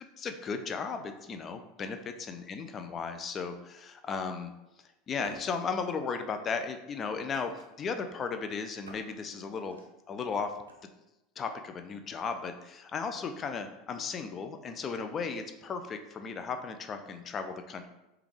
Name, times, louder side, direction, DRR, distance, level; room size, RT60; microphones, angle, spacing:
voice 1, 0.0-4.5 5.1-9.8 10.1-10.5 11.4-17.9, left 5 dB, 30° left, 7 dB, 0.3 m, -35 dB
sound 1, 3.7-3.8 5.2-5.4 7.3-7.8 8.8-9.1 9.6-9.9 10.7-10.8, right 2 dB, 85° right, 0.4 m, -47 dB
3.4 x 2.3 x 3.1 m, 0.96 s
figure-of-eight pair, 80°, 0 cm